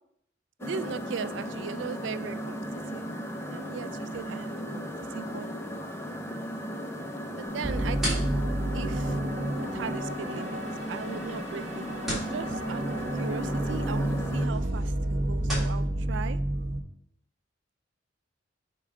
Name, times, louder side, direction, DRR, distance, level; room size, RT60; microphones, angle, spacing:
sound 1, 0.6-14.5, equal, 15° left, 0.6 m, -36 dB
voice 1, 0.6-3.1 3.5-5.5 7.3-8.2 8.7-9.2 9.7-16.4, right 6 dB, 75° right, 13 dB, 0.4 m, -38 dB
sound 2, 7.4-15.8, equal, ahead, 3.2 m, -40 dB
sound 3, 7.6-16.8, right 1 dB, 35° right, 0.8 m, -30 dB
7.4 x 3.8 x 4.9 m, 0.71 s
head